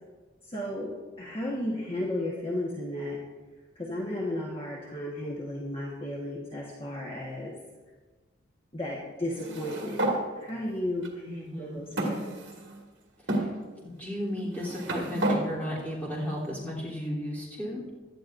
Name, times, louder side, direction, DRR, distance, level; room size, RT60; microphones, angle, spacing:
voice 1, 0.4-3.2 3.7-7.5 8.7-10.1 10.4-12.4, left 1 dB, 30° left, -4 dB, 1.2 m, -34 dB
sound 1, 9.4-10.2 11.0-11.1 12.0-12.8 13.3-13.5 14.4-15.4, right 1 dB, 65° right, 2.0 m, -30 dB
voice 2, 11.2-11.8 13.3-13.5 13.8-17.8, equal, 10° left, -7 dB, 3.2 m, -34 dB
17.0 x 11.5 x 2.6 m, 1.3 s
head